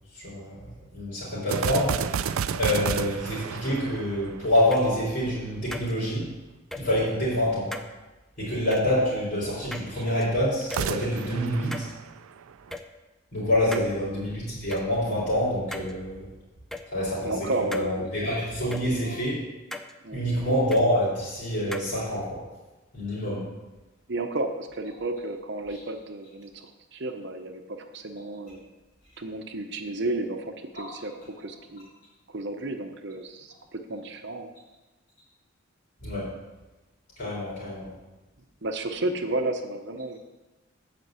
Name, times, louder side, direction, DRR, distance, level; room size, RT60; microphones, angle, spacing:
voice 1, 0.1-6.3 6.8-7.7 8.4-11.9 13.3-16.3 16.9-19.4 20.1-22.4 22.9-23.4 30.7-30.8 36.0-36.3 37.2-37.9, left 1 dB, 50° left, -11 dB, 3.7 m, -27 dB
sound 1, 1.5-4.9 10.6-12.7, right 7 dB, 85° right, 0.4 m, -31 dB
sound 2, 4.7-4.8 5.7-5.9 6.7-6.8 7.7-7.9 8.7-8.8 9.7-10.2 10.7-10.8 11.7-11.9 12.7-12.8 13.7-13.9 14.7-14.8 15.7-15.9 16.7-16.8 17.7-17.9 18.7-18.8 19.7-19.9 20.7-20.8 21.7-21.9, left 1 dB, ahead, 0.4 m, -36 dB
voice 2, 17.2-18.4 20.0-20.2 24.1-28.7 29.2-31.9 32.3-34.5 38.6-40.2, right 2 dB, 55° right, 6 dB, 0.9 m, -32 dB
8.3 x 5.2 x 7.6 m, 1.1 s
head